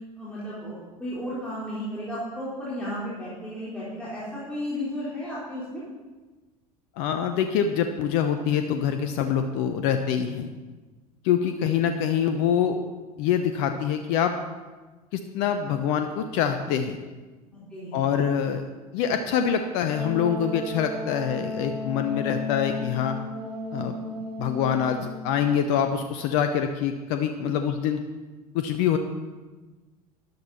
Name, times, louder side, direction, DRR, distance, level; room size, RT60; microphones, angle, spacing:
voice 1, 0.2-5.8 11.6-11.9 17.4-18.2, equal, 5° left, -10 dB, 3.8 m, -34 dB
voice 2, 7.0-10.5 11.2-12.8 13.2-14.3 15.1-17.0 17.9-18.6 18.9-23.2 23.7-23.9 24.4-28.0 28.5-29.0, left 8 dB, 50° left, 8 dB, 0.8 m, -25 dB
Wind instrument woodwind instrument, 19.9-25.5, left 2 dB, 80° right, 2.1 m, -34 dB
13.0 x 10.5 x 4.2 m, 1.3 s
figure-of-eight pair, 75°, 20 cm